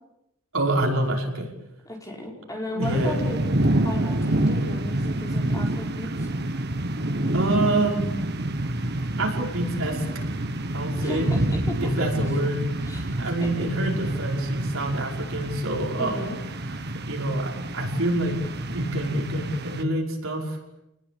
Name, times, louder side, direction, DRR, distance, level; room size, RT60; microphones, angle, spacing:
voice 1, 0.5-1.5 2.7-3.2 7.3-8.0 9.2-10.0 10.7-11.3 11.8-12.6 12.9-16.3 17.1-18.4 18.7-20.6, right 1 dB, 65° right, 0 dB, 5.6 m, -26 dB
voice 2, 1.8-3.4 3.8-6.3 11.0-11.9 12.8-13.5 16.0-16.4, left 1 dB, 15° left, 0 dB, 4.8 m, -35 dB
sound 1, 2.8-19.8, right 1 dB, 45° right, 1.5 m, -28 dB
29.5 x 20.0 x 8.7 m, 0.89 s
head